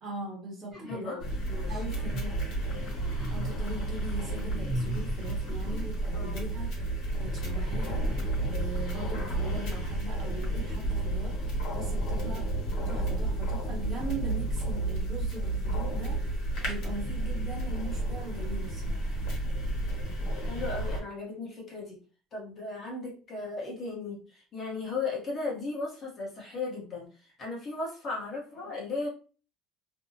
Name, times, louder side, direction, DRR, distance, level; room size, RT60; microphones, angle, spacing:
voice 1, 0.0-1.2 1.7-2.6 3.3-6.9 7.2-12.5 12.9-19.1, right 2 dB, 35° right, -2 dB, 1.0 m, -41 dB
sound 1, 0.7-1.1 1.6-2.3 2.7-3.7 4.0-5.9 7.1-8.5, equal, 10° right, 0.7 m, -40 dB
voice 2, 0.9-1.8 6.1-6.4 20.5-22.0 22.3-29.1, left 3 dB, 30° left, -3 dB, 0.9 m, -36 dB
sound 2, 1.2-21.0, right 1 dB, 55° left, 1.2 m, -31 dB
2.6 x 2.1 x 2.7 m, 0.36 s
cardioid pair, 150°, 0 cm